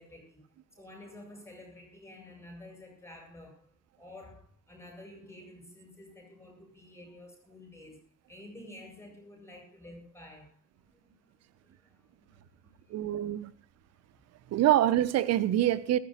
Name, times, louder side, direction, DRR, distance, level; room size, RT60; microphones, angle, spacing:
voice 1, 0.0-3.7 4.0-10.6 10.9-13.4 13.9-14.0, left 1 dB, 5° left, 8.0 m, -51 dB
voice 2, 12.9-13.5 14.5-16.0, right 12 dB, 40° right, 1.3 m, -25 dB
27.5 x 15.0 x 2.6 m
figure-of-eight pair, 65°, 37 cm